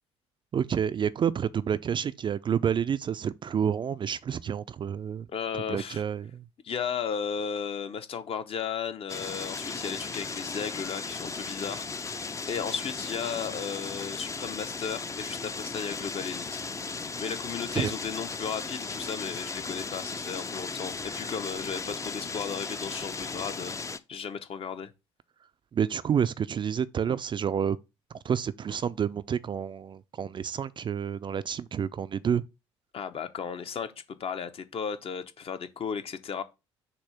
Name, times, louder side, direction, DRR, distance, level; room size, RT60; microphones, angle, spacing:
voice 1, 0.5-5.3 5.7-6.4 17.7-17.9 25.7-27.8 28.2-32.5, right 8 dB, 35° right, 0.4 m, -29 dB
voice 2, 5.3-6.0 6.6-16.6 17.2-23.7 24.1-24.9 32.9-36.4, left 6 dB, 40° left, 0.9 m, -35 dB
sound 1, 9.1-24.0, left 4 dB, 20° left, 0.6 m, -36 dB
6.8 x 2.7 x 5.7 m
figure-of-eight pair, 50°, 14 cm